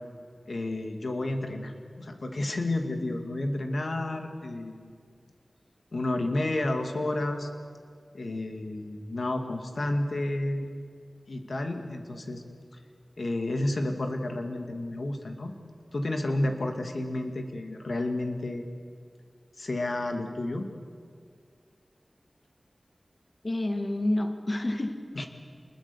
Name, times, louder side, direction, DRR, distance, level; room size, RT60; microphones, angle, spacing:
voice 1, 0.5-4.9 5.9-7.5 8.1-10.7 11.3-12.4 13.2-15.5 15.9-18.6 19.6-20.7 25.2-25.3, left 1 dB, 70° left, 4 dB, 2.4 m, -31 dB
voice 2, 23.4-25.3, left 1 dB, 45° left, 6 dB, 1.9 m, -29 dB
28.0 x 20.5 x 7.1 m, 2.1 s
wide cardioid pair, 70°, 0 cm